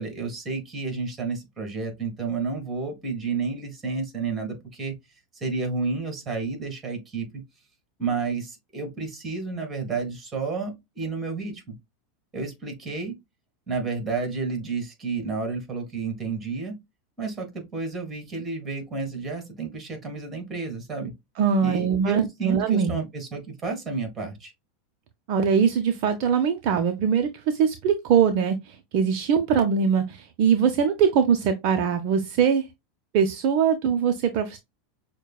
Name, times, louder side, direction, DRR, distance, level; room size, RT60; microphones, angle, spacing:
voice 1, 0.0-4.9 5.4-7.4 8.0-11.8 12.3-13.1 13.7-16.7 17.2-21.1 21.6-24.5, right 4 dB, 25° right, 1.9 m, -31 dB
voice 2, 21.4-23.0 25.3-32.7 33.1-34.6, right 7 dB, 55° right, 0.6 m, -22 dB
6.4 x 2.2 x 2.3 m
hypercardioid pair, 110°, 0 cm